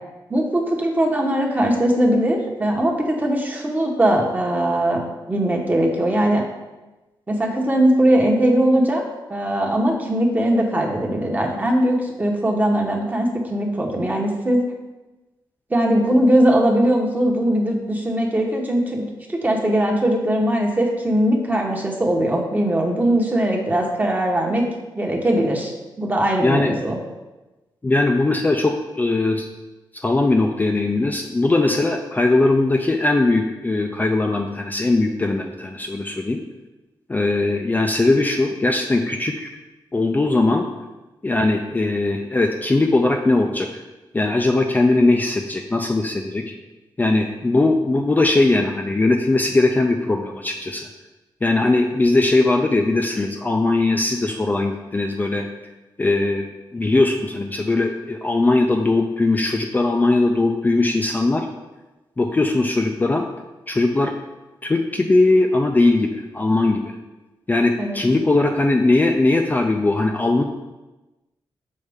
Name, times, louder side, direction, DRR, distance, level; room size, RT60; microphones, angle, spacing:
voice 1, 0.3-5.0 5.3-6.4 7.3-9.0 9.3-14.6 15.7-19.0 19.3-24.6 24.9-25.7 26.0-27.0 67.8-68.0, right 1 dB, 20° right, 0 dB, 1.0 m, -20 dB
voice 2, 26.4-26.7 27.8-29.5 30.0-36.4 37.1-39.5 39.9-40.7 41.2-43.8 44.1-46.4 47.0-50.9 51.4-55.5 56.0-61.5 62.2-63.2 63.7-64.1 64.6-67.0 67.5-70.4, left 2 dB, 20° left, 2 dB, 0.4 m, -19 dB
6.5 x 4.2 x 3.5 m, 1.1 s
wide cardioid pair, 105°, 8 cm